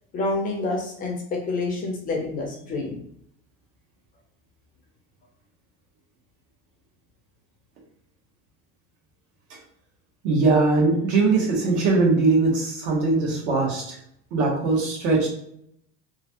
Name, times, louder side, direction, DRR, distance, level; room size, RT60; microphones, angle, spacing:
voice 1, 0.1-3.0, left 3 dB, 25° left, 1 dB, 0.4 m, -28 dB
voice 2, 10.2-14.0 14.3-15.3, right 3 dB, 80° right, -2 dB, 1.2 m, -21 dB
3.0 x 2.3 x 2.7 m, 0.72 s
cardioid pair, 170°, 35 cm